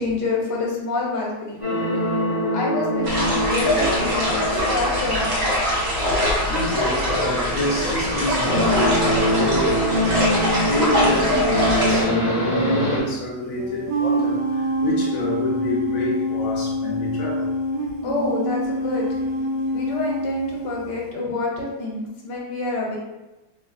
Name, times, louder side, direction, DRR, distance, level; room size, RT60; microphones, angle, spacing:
voice 1, 0.0-1.6 2.5-5.4 18.0-19.1 19.7-23.0, left 3 dB, 85° left, -2 dB, 1.4 m, -27 dB
sound 1, 1.6-6.9 7.2-13.0, equal, 25° left, 0.7 m, -24 dB
sound 2, 3.0-12.0, equal, 50° right, 1.4 m, -23 dB
voice 2, 6.0-17.5, left 1 dB, 60° left, -3 dB, 1.1 m, -28 dB
sound 3, 10.8-10.9 13.6-21.0, equal, 85° right, 1.3 m, -26 dB
3.1 x 3.0 x 2.5 m, 1.0 s
omnidirectional pair, 1.8 m